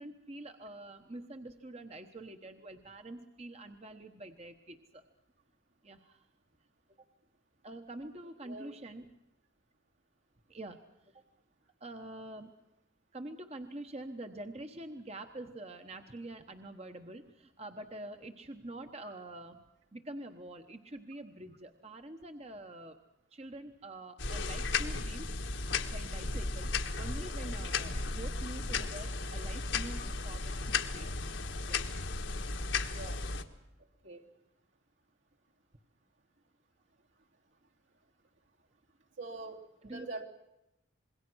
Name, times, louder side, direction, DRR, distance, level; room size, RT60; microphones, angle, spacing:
voice 1, 0.0-5.0 5.8-6.3 7.6-9.1 10.5-11.2 11.8-12.5 13.1-19.6 19.9-23.0 23.3-31.1 31.6-31.8 39.8-40.1, right 1 dB, 30° right, 6 dB, 1.1 m, -46 dB
sound 1, 24.2-33.4, left 4 dB, 70° left, 1.6 m, -35 dB
voice 2, 32.9-33.2 34.0-34.2 39.2-40.3, right 2 dB, 75° right, 0 dB, 3.4 m, -44 dB
26.5 x 21.5 x 6.3 m, 0.92 s
head